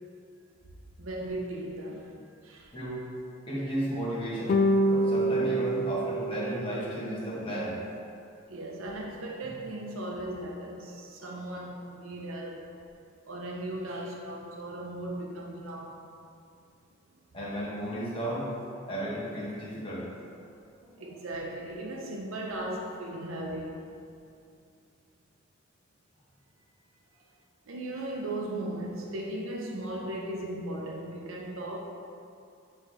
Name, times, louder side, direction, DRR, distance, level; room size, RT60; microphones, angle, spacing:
voice 1, 1.0-2.1 2.4-2.7 8.5-12.7 13.3-16.1 21.0-23.8 27.7-31.8, right 1 dB, 85° right, 0 dB, 0.7 m, -37 dB
voice 2, 3.5-4.6 4.9-7.7 17.3-18.5 18.9-20.1 20.8-21.2, equal, 25° left, -8 dB, 1.5 m, -34 dB
sound 1, 4.5-7.0, equal, 45° left, 0.3 m, -26 dB
7.7 x 3.8 x 3.4 m, 2.5 s
head